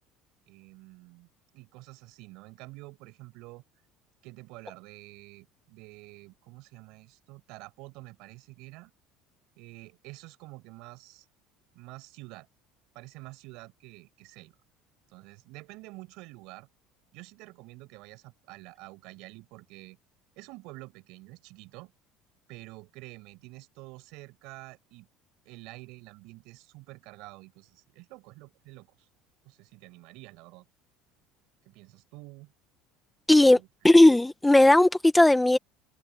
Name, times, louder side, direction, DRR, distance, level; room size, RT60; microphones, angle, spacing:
voice 1, 0.5-1.3 1.5-3.6 4.2-8.9 9.6-11.3 11.7-12.5 12.9-14.5 15.1-16.7 17.1-20.0 20.4-21.9 22.5-25.1 25.5-29.1 29.4-30.7 31.7-32.5 33.4-34.0, right 23 dB, 60° right, 5.5 m, -48 dB
voice 2, 33.3-33.6 33.8-35.6, left 1 dB, 5° left, 0.6 m, -17 dB
cardioid pair, 165°, 0 cm